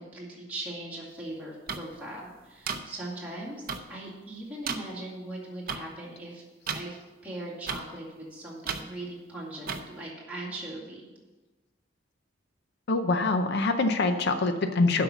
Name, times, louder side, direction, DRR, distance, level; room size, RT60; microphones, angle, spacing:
voice 1, 0.0-6.4 6.7-7.0 7.2-11.1, right 1 dB, 5° right, -6 dB, 2.2 m, -40 dB
sound 1, 1.7-1.8 2.7-2.8 3.7-3.8 4.7-4.8 5.7-5.8 6.7-6.8 7.7-7.8 8.7-8.8 9.7-9.8, right 6 dB, 45° right, 0.6 m, -31 dB
voice 2, 12.9-15.0, left 3 dB, 55° left, 8 dB, 0.6 m, -25 dB
7.7 x 5.7 x 7.1 m, 1.2 s
head